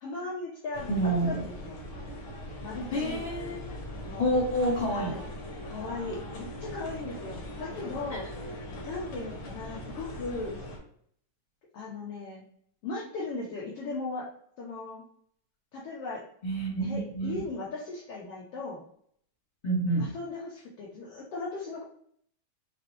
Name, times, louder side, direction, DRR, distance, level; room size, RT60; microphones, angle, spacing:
voice 1, 0.0-1.8 2.6-3.6 4.0-4.3 4.9-5.2 5.6-8.6 8.9-10.6 11.7-12.4 12.8-14.3 14.6-15.0 15.7-16.2 16.8-18.8 20.0-21.8, left 3 dB, 80° left, -4 dB, 1.3 m, -38 dB
sound 1, 0.7-10.8, equal, 60° left, 1.5 m, -40 dB
voice 2, 0.9-1.4 2.9-3.6 4.2-5.1 8.1-8.2 16.4-17.4 19.6-20.1, right 1 dB, 20° left, -5 dB, 1.4 m, -28 dB
5.3 x 3.0 x 2.9 m, 0.64 s
omnidirectional pair, 3.7 m